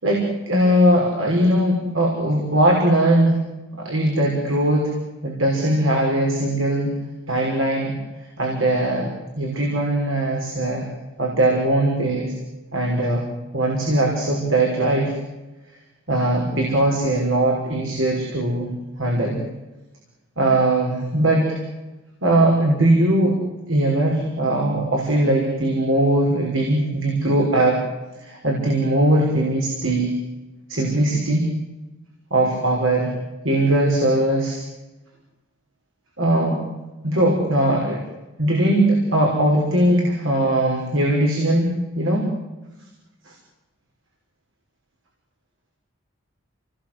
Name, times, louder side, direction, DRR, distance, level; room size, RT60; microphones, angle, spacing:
voice 1, 0.0-3.4 3.8-4.9 5.2-6.9 7.3-7.9 8.4-9.1 9.4-10.9 11.2-12.3 12.7-13.2 13.5-15.2 16.1-18.7 19.0-19.4 20.4-21.6 22.2-23.4 23.7-27.8 28.2-30.2 30.7-31.5 32.3-33.1 33.4-34.6 36.2-36.6 37.0-38.0 38.4-42.3 43.3-43.4, right 1 dB, 85° right, -1 dB, 6.1 m, -20 dB
29.5 x 20.0 x 7.9 m, 1.0 s
head